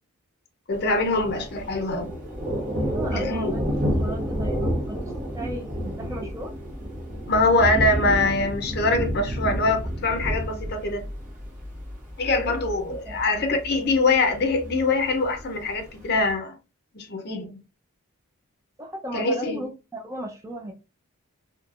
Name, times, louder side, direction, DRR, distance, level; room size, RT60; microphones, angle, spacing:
voice 1, 0.7-2.1 3.1-3.5 7.3-11.1 12.2-16.6 16.9-17.6 19.1-19.6, left 2 dB, 45° left, 0.6 m, -23 dB
Thunder, 0.7-16.3, equal, 35° right, 0.8 m, -30 dB
voice 2, 2.9-3.7 4.0-6.5 12.3-12.6 12.9-13.6 18.8-20.7, equal, 15° right, 0.5 m, -36 dB
3.1 x 2.1 x 2.5 m
head